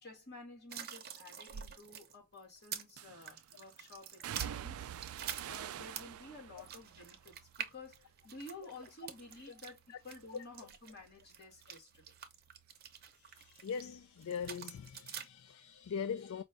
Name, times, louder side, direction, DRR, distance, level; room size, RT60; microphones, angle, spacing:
voice 1, 0.0-4.9 5.4-12.2, left 2 dB, 50° left, 2.2 m, -52 dB
sound 1, 0.7-2.9 3.2-6.2 6.6-13.9 14.2-15.3, right 8 dB, 45° right, 0.8 m, -47 dB
sound 2, 1.5-1.7 3.0-3.4 4.2-8.5 8.8-9.4 9.8-13.1 13.3-14.5 14.8-14.9, right 9 dB, 75° right, 0.4 m, -48 dB
voice 2, 13.1-16.4, left 6 dB, 65° left, 0.3 m, -41 dB
5.1 x 2.5 x 3.4 m
head